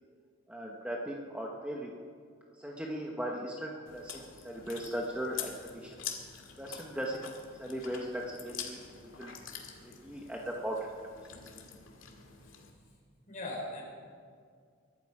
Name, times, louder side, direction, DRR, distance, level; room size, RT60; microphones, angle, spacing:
voice 1, 0.5-1.9 2.5-6.0 6.6-7.3 7.6-9.3 9.8-11.1, equal, 5° right, -1 dB, 1.1 m, -38 dB
Chewing mastication, 3.9-12.7, left 7 dB, 75° left, 2.1 m, -46 dB
voice 2, 13.3-13.8, left 1 dB, 40° left, -3 dB, 4.8 m, -42 dB
23.0 x 11.5 x 4.9 m, 2.1 s
head